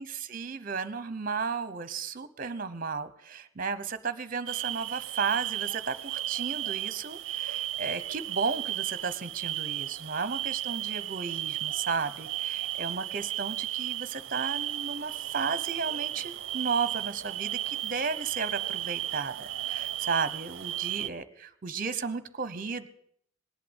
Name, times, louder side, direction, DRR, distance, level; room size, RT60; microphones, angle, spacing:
voice 1, 0.0-22.9, right 5 dB, 45° right, 14 dB, 0.9 m, -34 dB
sound 1, 4.5-21.1, right 14 dB, 70° right, 0.5 m, -34 dB
19.5 x 8.4 x 8.1 m, 0.68 s
head